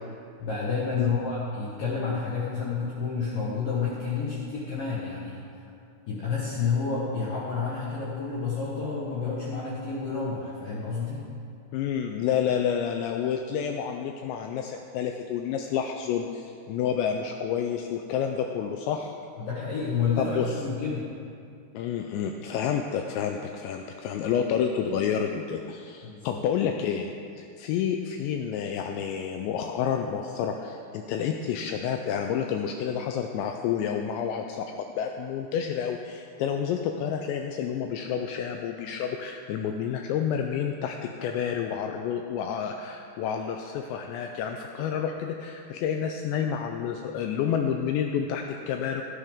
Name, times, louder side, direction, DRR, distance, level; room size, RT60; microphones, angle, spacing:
voice 1, 0.4-5.4 6.1-11.3 19.4-21.1 26.0-26.4, left 5 dB, 65° left, -6 dB, 2.2 m, -30 dB
voice 2, 11.7-19.2 20.2-20.5 21.7-27.1 27.4-49.0, left 8 dB, 85° left, 4 dB, 2.6 m, -29 dB
15.5 x 11.0 x 3.6 m, 2.4 s
omnidirectional pair, 5.6 m